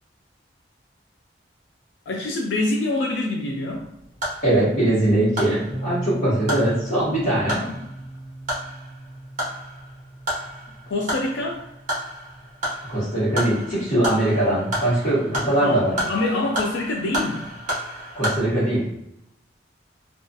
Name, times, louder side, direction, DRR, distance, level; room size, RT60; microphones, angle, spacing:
voice 1, 2.1-3.9 7.4-7.8 10.9-11.7 15.6-17.5, left 2 dB, 80° left, 0 dB, 0.4 m, -26 dB
sound 1, 3.7-18.4, equal, 45° right, 0.8 m, -32 dB
voice 2, 4.4-7.6 12.9-15.9 18.1-18.9, right 1 dB, 40° left, -13 dB, 1.1 m, -21 dB
sound 2, 5.7-13.4, right 1 dB, 15° right, 0.5 m, -37 dB
2.3 x 2.3 x 2.6 m, 0.81 s
head